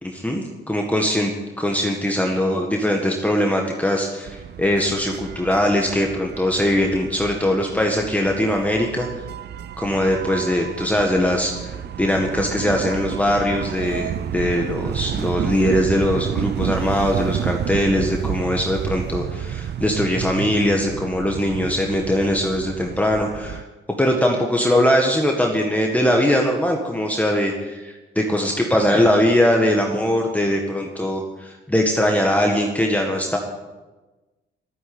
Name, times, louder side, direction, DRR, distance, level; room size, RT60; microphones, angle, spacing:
voice 1, 0.0-1.3 1.6-9.1 9.8-23.7 24.0-33.4, left 1 dB, 5° left, 1 dB, 1.8 m, -21 dB
sound 1, 4.2-23.6, right 9 dB, 55° right, 0.6 m, -30 dB
12.5 x 9.4 x 9.6 m, 1.2 s
cardioid pair, 90°, 20 cm